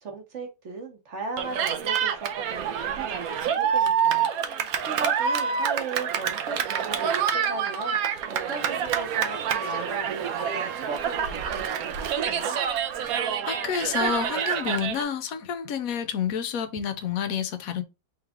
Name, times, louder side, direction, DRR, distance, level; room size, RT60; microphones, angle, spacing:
voice 1, 0.0-12.6, right 3 dB, 45° right, 1.2 m, -38 dB
Cheering, 1.4-15.0, right 8 dB, 65° right, 1.0 m, -27 dB
voice 2, 13.5-17.8, left 7 dB, 65° left, 0.9 m, -29 dB
3.5 x 3.2 x 3.5 m
omnidirectional pair, 1.9 m